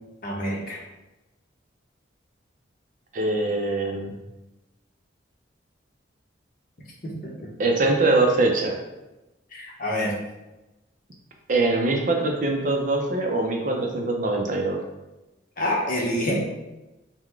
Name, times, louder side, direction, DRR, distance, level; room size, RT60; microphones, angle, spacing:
voice 1, 0.2-0.8 7.0-7.1 9.5-10.1 15.6-16.5, equal, 45° left, -3 dB, 0.9 m, -26 dB
voice 2, 3.1-4.1 7.6-8.8 11.5-14.8, right 2 dB, 45° right, 2 dB, 0.5 m, -23 dB
3.9 x 2.1 x 4.5 m, 1.0 s
head